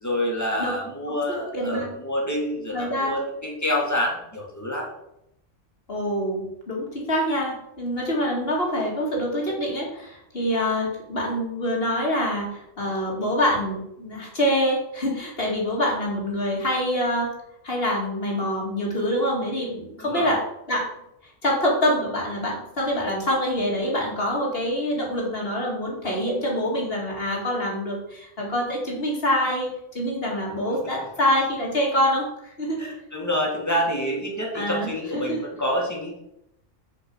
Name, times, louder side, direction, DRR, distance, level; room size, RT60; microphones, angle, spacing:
voice 1, 0.0-4.9 20.0-20.3 32.8-36.2, equal, 15° left, -2 dB, 2.1 m, -27 dB
voice 2, 1.5-1.9 2.7-3.2 5.9-17.3 17.6-20.4 20.7-20.9 21.4-29.7 29.9-32.3 32.6-32.8 34.5-34.9 35.1-35.4, equal, 50° left, -2 dB, 2.5 m, -25 dB
6.9 x 5.1 x 6.4 m, 0.81 s
omnidirectional pair, 1.3 m